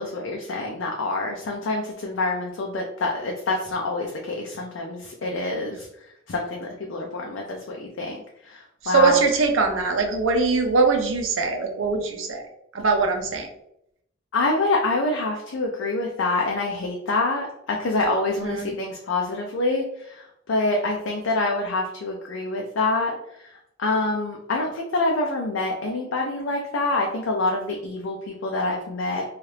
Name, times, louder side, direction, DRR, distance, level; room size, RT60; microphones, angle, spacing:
voice 1, 0.0-5.9 6.3-8.2 8.4-9.2 14.3-23.1 23.8-29.2, left 2 dB, 75° left, 0 dB, 0.4 m, -26 dB
voice 2, 8.8-12.5 12.7-13.5 18.4-18.7, right 4 dB, 80° right, 4 dB, 0.6 m, -22 dB
2.8 x 2.4 x 3.2 m, 0.78 s
head